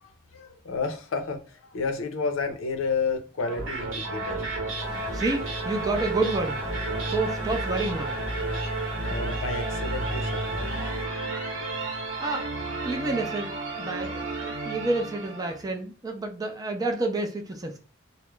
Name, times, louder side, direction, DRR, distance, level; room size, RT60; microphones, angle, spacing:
voice 1, 0.0-5.2 9.0-11.0, left 4 dB, 80° left, 0.5 m, -32 dB
sound 1, 3.4-15.6, right 2 dB, 70° right, 0.9 m, -31 dB
sound 2, 4.8-11.1, equal, 25° left, 0.6 m, -47 dB
voice 2, 5.1-6.6 7.1-8.2 11.6-12.5 12.8-17.8, right 2 dB, 20° right, 0.4 m, -29 dB
2.3 x 2.0 x 3.0 m
head